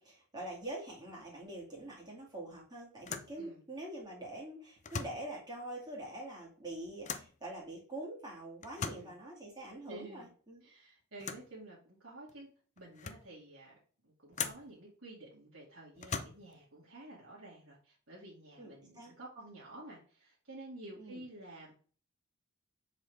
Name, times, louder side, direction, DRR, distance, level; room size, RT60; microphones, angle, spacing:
voice 1, 0.0-10.6 18.6-19.1 21.0-21.2, right 1 dB, 20° right, -4 dB, 2.1 m, -45 dB
sound 1, 1.8-2.0 2.3-2.4 3.0-3.4 4.8-5.3 7.0-7.4 8.6-9.2 11.2-11.5 12.3-12.4 12.8-13.3 14.3-14.7 16.0-16.6, left 6 dB, 35° left, 0.5 m, -41 dB
voice 2, 8.8-9.1 9.9-10.3 10.6-12.5 12.8-13.8 14.0-21.7, right 1 dB, 65° right, -6 dB, 2.1 m, -51 dB
7.2 x 4.2 x 3.3 m, 0.41 s
head